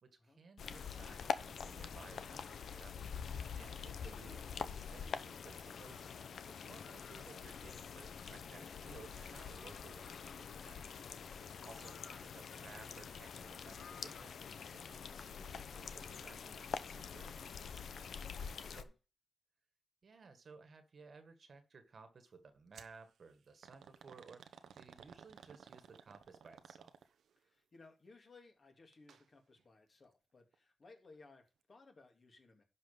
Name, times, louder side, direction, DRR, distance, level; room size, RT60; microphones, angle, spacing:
voice 1, 0.0-3.0 3.5-6.1 6.4-10.9 11.6-17.8 18.7-18.9 20.0-27.0, right 4 dB, 50° right, 1.7 m, -58 dB
sound 1, 0.6-18.8, left 6 dB, 70° left, 0.9 m, -45 dB
voice 2, 3.7-4.1 11.6-11.7 18.1-18.9 27.4-32.6, left 3 dB, 40° left, 2.6 m, -62 dB
sound 2, 22.7-23.0 23.6-27.3 28.9-29.2 29.6-29.7 30.5-30.6, right 7 dB, 90° right, 0.9 m, -57 dB
11.5 x 5.3 x 5.2 m
wide cardioid pair, 115°, 0 cm